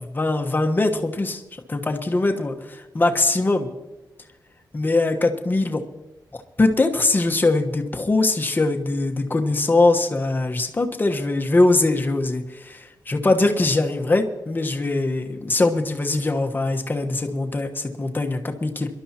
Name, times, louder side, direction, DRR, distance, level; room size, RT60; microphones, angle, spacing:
voice 1, 0.2-1.4 1.7-3.7 4.7-5.8 6.6-18.9, left 2 dB, 25° left, 3 dB, 1.2 m, -22 dB
26.0 x 12.0 x 2.9 m, 1.0 s
wide cardioid pair, 140°, 8 cm